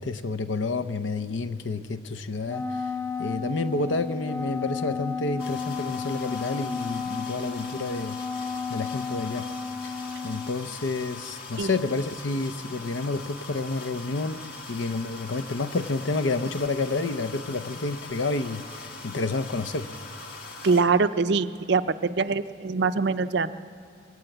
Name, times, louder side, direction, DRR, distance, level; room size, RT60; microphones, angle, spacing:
voice 1, 0.0-2.8 3.2-8.2 8.7-9.5 10.2-19.9, left 3 dB, 65° left, 10 dB, 0.7 m, -29 dB
Wind instrument woodwind instrument, 2.4-10.6, left 5 dB, 10° left, 0.8 m, -33 dB
sound 1, 5.4-20.8, left 3 dB, 50° left, 1.9 m, -41 dB
voice 2, 20.6-23.5, right 4 dB, 55° right, 12 dB, 0.5 m, -23 dB
21.5 x 17.5 x 7.9 m, 2.4 s
head